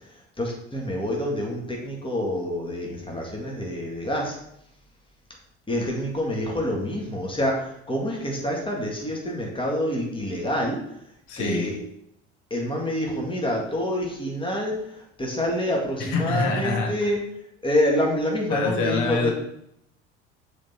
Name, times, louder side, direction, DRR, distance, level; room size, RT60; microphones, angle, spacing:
voice 1, 0.4-4.4 5.7-10.8 11.4-11.8 12.5-17.2 17.6-19.3, left 1 dB, 15° left, -1 dB, 2.1 m, -27 dB
voice 2, 11.3-11.7 16.0-17.1 18.5-19.3, left 3 dB, 55° left, 1 dB, 1.7 m, -26 dB
7.2 x 4.0 x 4.4 m, 0.74 s
hypercardioid pair, 65°, 34 cm